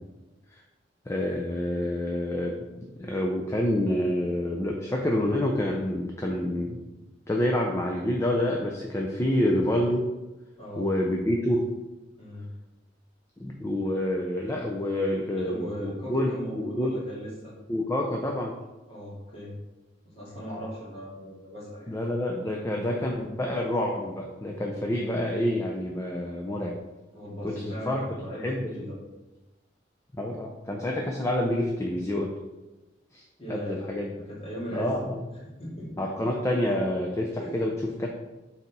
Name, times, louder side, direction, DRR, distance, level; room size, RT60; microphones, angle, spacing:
voice 1, 1.1-6.8 7.3-10.1 10.8-11.7 13.4-17.0 17.7-18.5 21.9-26.8 27.4-28.0 28.4-28.7 30.1-32.3 33.1-34.1 34.7-35.2 36.0-38.1, left 1 dB, 15° left, 0 dB, 0.5 m, -28 dB
voice 2, 10.6-10.9 12.2-12.5 15.4-17.5 18.9-19.5 20.0-21.9 27.1-29.0 33.4-33.8 34.1-35.0 35.6-36.1 37.4-37.6, equal, 30° left, -6 dB, 2.2 m, -38 dB
6.7 x 4.1 x 4.1 m, 1.1 s
head